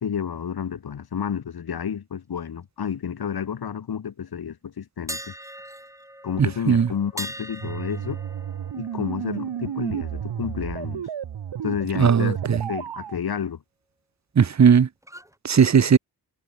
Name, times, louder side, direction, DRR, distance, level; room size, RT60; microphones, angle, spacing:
voice 1, 0.0-5.3 6.2-8.2 8.8-11.1 11.6-12.4 12.7-13.6, left 7 dB, 60° left, 1.9 m, -30 dB
sound 1, 5.1-11.0 11.3-11.5 15.0-15.4, right 1 dB, 5° right, 7.3 m, -41 dB
sound 2, 7.6-13.2, right 9 dB, 80° right, 4.6 m, -32 dB
voice 2, 12.0-12.6 14.4-14.9 15.4-16.0, right 7 dB, 40° right, 1.0 m, -17 dB
cardioid pair, 50°, 42 cm